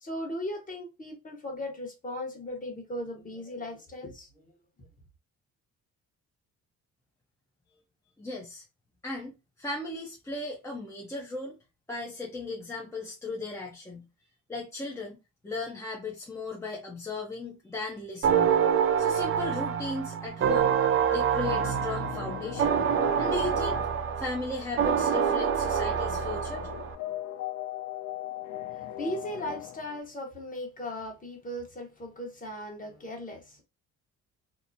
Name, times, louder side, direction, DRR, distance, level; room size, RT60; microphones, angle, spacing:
voice 1, 0.0-4.5 28.7-33.6, left 1 dB, 25° left, 1.0 m, -37 dB
voice 2, 8.2-8.6 9.0-11.6 11.9-14.1 14.5-15.2 15.4-18.6 19.0-22.7 23.2-23.8 24.2-26.7, left 2 dB, 10° left, 0.6 m, -36 dB
sound 1, 18.2-26.9, right 8 dB, 45° right, 0.4 m, -26 dB
sound 2, 20.8-30.0, left 12 dB, 75° left, 0.5 m, -40 dB
2.8 x 2.0 x 2.6 m
cardioid pair, 90°, 30 cm